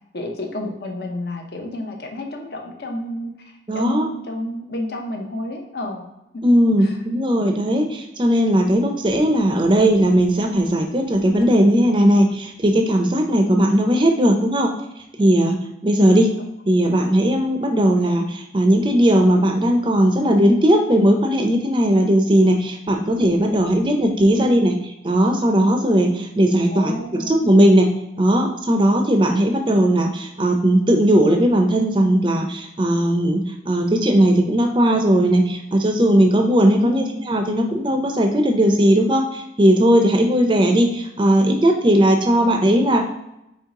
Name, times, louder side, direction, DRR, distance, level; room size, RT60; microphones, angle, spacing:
voice 1, 0.1-6.1 6.3-6.4 6.8-7.0 18.0-18.1 24.3-24.5 26.7-27.3 36.8-37.2, left 1 dB, 55° left, 2 dB, 0.7 m, -30 dB
voice 2, 3.7-4.1 6.4-14.7 15.2-15.6 15.8-16.3 16.7-24.7 25.0-27.9 28.2-43.1, right 1 dB, 25° right, 4 dB, 0.5 m, -17 dB
4.6 x 3.1 x 3.7 m, 0.86 s
head